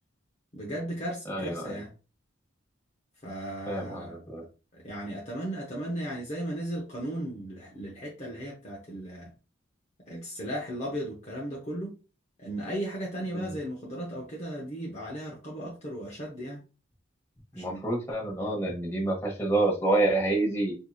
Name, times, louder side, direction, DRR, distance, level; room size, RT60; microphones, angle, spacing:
voice 1, 0.5-1.9 3.2-4.2 4.7-9.3 10.1-11.9 12.4-16.6 17.5-17.8, right 1 dB, 35° left, 0.7 m, -36 dB
voice 2, 1.3-1.8 3.7-4.4 13.3-13.6 17.5-20.7, right 2 dB, 15° left, 1.1 m, -28 dB
4.6 x 2.7 x 2.3 m
head